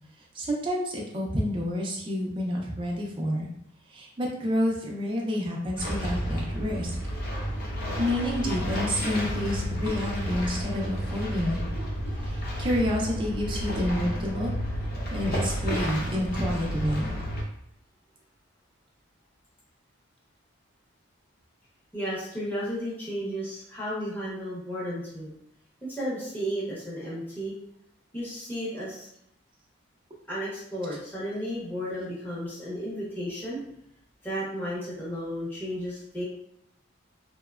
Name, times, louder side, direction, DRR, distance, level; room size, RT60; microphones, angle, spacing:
voice 1, 0.3-3.5 3.9-6.9 8.0-11.6 12.2-14.5 15.1-17.1, equal, 25° right, -2 dB, 0.4 m, -29 dB
sound 1, 5.7-17.4, equal, 45° left, 0.5 m, -31 dB
voice 2, 21.9-25.3 25.8-27.5 28.1-29.1 30.3-33.6 34.2-36.2, equal, 10° left, -8 dB, 0.7 m, -33 dB
2.8 x 2.1 x 2.3 m, 0.75 s
head